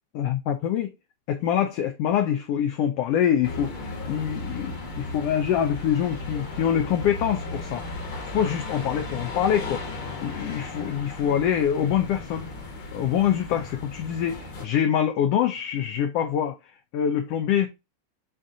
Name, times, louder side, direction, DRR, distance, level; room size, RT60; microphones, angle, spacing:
voice 1, 0.1-0.9 1.3-12.4 12.9-16.6 16.9-17.7, left 9 dB, 85° left, 1.3 m, -25 dB
sound 1, 3.4-14.7, left 2 dB, 50° left, 1.8 m, -36 dB
7.6 x 2.5 x 2.6 m
omnidirectional pair, 3.3 m